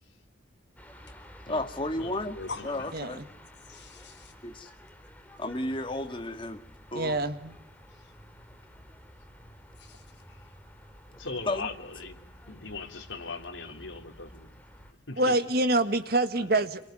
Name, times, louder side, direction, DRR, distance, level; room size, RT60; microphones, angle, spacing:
sound 1, 0.8-14.9, equal, 10° left, 3.1 m, -51 dB
voice 1, 1.5-2.4 2.7-3.2 4.4-4.7 5.4-6.6 6.9-7.2 11.5-11.7, left 1 dB, 25° left, 2.0 m, -32 dB
voice 2, 2.0-2.5 3.0-3.2 11.1-12.2 12.5-14.5 14.8-15.5 16.4-16.7, left 3 dB, 85° left, 3.4 m, -40 dB
voice 3, 3.6-4.3 7.9-8.1 9.8-10.6, left 4 dB, 65° left, 4.9 m, -45 dB
voice 4, 6.9-7.6 15.2-16.8, right 2 dB, 55° right, 1.8 m, -26 dB
28.0 x 23.0 x 9.1 m
head